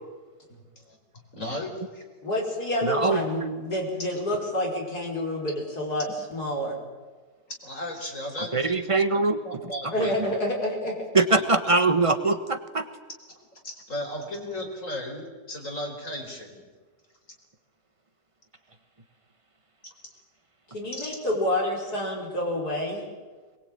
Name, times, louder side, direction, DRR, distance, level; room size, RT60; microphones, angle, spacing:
voice 1, 1.3-2.1 7.6-10.4 11.6-11.8 13.6-16.6 20.9-21.2, left 1 dB, 45° left, 2 dB, 4.9 m, -36 dB
voice 2, 2.2-6.8 9.9-11.0 20.7-23.1, left 1 dB, 65° left, 0 dB, 5.7 m, -28 dB
voice 3, 2.8-3.6 8.5-9.4 10.0-10.1 11.1-12.8, right 3 dB, 20° right, 9 dB, 1.3 m, -23 dB
22.5 x 21.5 x 9.1 m, 1.4 s
omnidirectional pair, 1.8 m